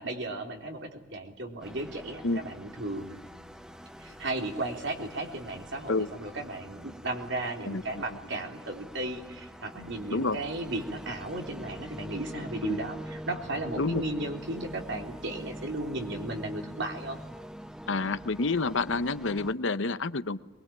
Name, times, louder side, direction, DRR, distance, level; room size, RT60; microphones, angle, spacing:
voice 1, 0.0-3.2 4.0-17.2, right 2 dB, 60° right, 3 dB, 3.7 m, -35 dB
sound 1, 1.6-19.5, equal, 5° right, 0.8 m, -44 dB
voice 2, 17.9-20.4, left 3 dB, 60° left, 13 dB, 0.9 m, -28 dB
23.0 x 22.0 x 8.8 m, 1.1 s
head